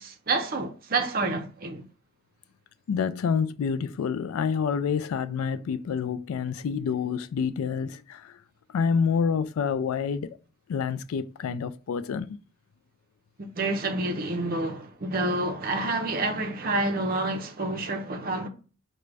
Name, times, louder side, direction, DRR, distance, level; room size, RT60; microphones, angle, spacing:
voice 1, 0.0-1.8 13.4-18.5, right 2 dB, 45° right, 0.5 m, -28 dB
voice 2, 2.9-8.4 8.7-10.4 10.7-12.4, left 6 dB, 85° left, 0.3 m, -28 dB
4.9 x 2.2 x 3.3 m
head